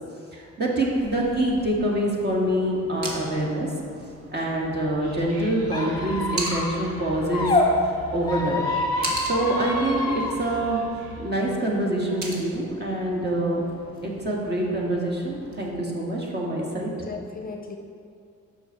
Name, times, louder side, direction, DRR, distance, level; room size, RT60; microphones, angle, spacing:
voice 1, 0.3-3.7 4.3-7.5 8.1-8.6 9.2-10.8 11.2-13.6 14.0-16.9, right 1 dB, 35° right, -2 dB, 2.0 m, -25 dB
sound 1, 0.9-15.7, right 2 dB, 65° right, 1.6 m, -40 dB
Whispering, 4.6-11.5, equal, 85° right, 1.3 m, -42 dB
Squeak, 5.7-7.7 8.2-10.3, left 3 dB, 15° left, 1.6 m, -27 dB
voice 2, 16.7-17.8, left 5 dB, 30° left, 3 dB, 0.7 m, -37 dB
7.0 x 6.1 x 5.8 m, 2.4 s
cardioid pair, 90°, 30 cm